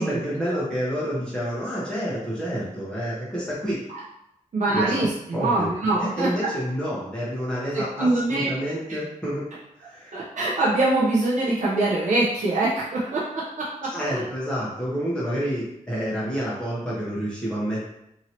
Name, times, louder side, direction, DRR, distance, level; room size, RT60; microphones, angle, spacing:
voice 1, 0.0-3.8 4.7-5.0 5.3-5.7 6.0-9.4 9.8-10.2 13.9-17.8, equal, 5° left, -8 dB, 1.0 m, -28 dB
voice 2, 4.5-6.5 7.7-8.5 10.1-13.2 13.6-13.7 14.1-14.3, right 2 dB, 65° right, -6 dB, 0.7 m, -23 dB
2.9 x 2.7 x 2.8 m, 0.81 s
cardioid pair, 70°, 14 cm